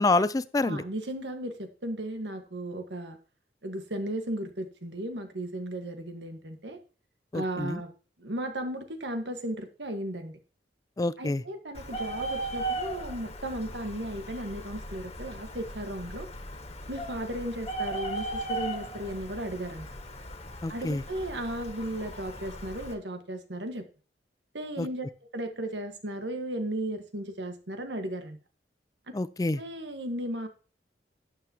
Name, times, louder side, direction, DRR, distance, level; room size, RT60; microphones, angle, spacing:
voice 1, 0.0-0.8 7.3-7.8 11.0-11.4 20.6-21.0 24.8-24.9 29.1-29.6, left 2 dB, 20° left, 16 dB, 0.4 m, -27 dB
voice 2, 0.6-3.2 3.6-6.8 7.3-7.9 8.2-10.4 11.2-16.3 16.9-19.9 20.7-23.9 24.5-25.1 25.3-28.4 29.6-30.5, right 1 dB, 85° right, 6 dB, 1.6 m, -35 dB
Bird, 11.8-22.9, right 1 dB, 35° left, 1.7 m, -37 dB
12.5 x 8.9 x 2.9 m, 0.37 s
head